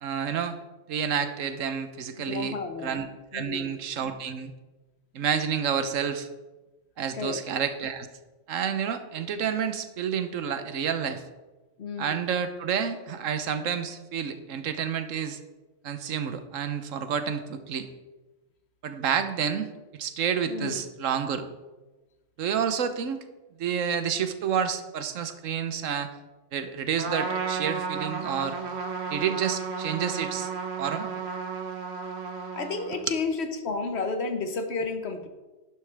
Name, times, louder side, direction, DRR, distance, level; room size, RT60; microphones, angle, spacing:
voice 1, 0.0-0.6 0.9-2.5 2.8-3.1 3.3-4.5 5.1-6.3 7.0-8.1 8.5-11.2 12.0-15.4 15.8-17.9 18.8-21.4 22.4-23.2 23.6-26.1 26.5-28.6 29.1-30.5 30.8-31.1 32.9-33.0, right 7 dB, 85° right, 10 dB, 1.2 m, -29 dB
voice 2, 2.3-3.0 3.3-3.7 7.1-7.4 11.8-12.2 20.5-20.8 32.5-35.3, left 4 dB, 60° left, 7 dB, 1.2 m, -32 dB
Trumpet, 27.0-33.1, right 5 dB, 60° right, 1.2 m, -33 dB
11.0 x 10.5 x 3.4 m, 1.2 s
omnidirectional pair, 1.3 m